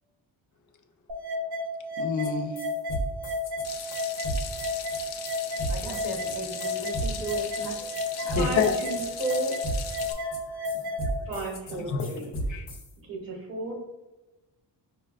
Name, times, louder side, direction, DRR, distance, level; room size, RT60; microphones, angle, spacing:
sound 1, 1.1-11.1, left 1 dB, 60° right, 0.7 m, -33 dB
voice 1, 2.0-2.5 7.8-7.9 8.2-8.7 10.1-10.6 11.9-12.2 12.5-12.7, left 6 dB, 45° left, 3 dB, 0.5 m, -29 dB
sound 2, 2.2-2.3 2.6-12.9, equal, 70° left, 0.9 m, -35 dB
Water tap faucet / Sink (filling or washing), 3.6-10.1, left 8 dB, 90° left, 0.5 m, -39 dB
voice 2, 5.7-7.8 8.3-8.5, right 1 dB, 5° right, -2 dB, 0.6 m, -36 dB
voice 3, 8.3-9.6 11.2-12.3 13.0-13.7, right 2 dB, 30° right, -2 dB, 0.9 m, -33 dB
5.2 x 2.2 x 2.3 m, 1.0 s
cardioid pair, 130°, 43 cm